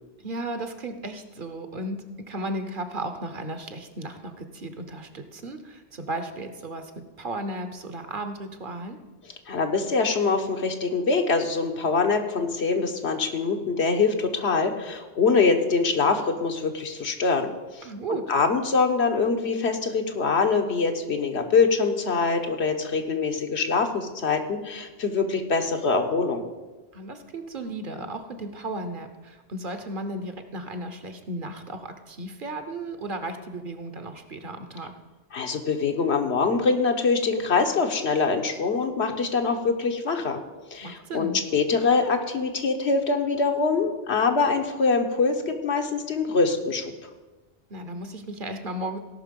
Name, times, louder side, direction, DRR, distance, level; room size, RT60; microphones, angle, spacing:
voice 1, 0.2-9.0 17.8-18.2 26.9-34.9 40.8-41.4 47.7-49.0, right 1 dB, 55° right, 8 dB, 1.1 m, -35 dB
voice 2, 9.5-17.9 18.3-26.4 35.3-40.4 40.7-46.9, left 4 dB, 80° left, 4 dB, 1.4 m, -24 dB
17.0 x 5.9 x 5.3 m, 1.2 s
omnidirectional pair, 1.1 m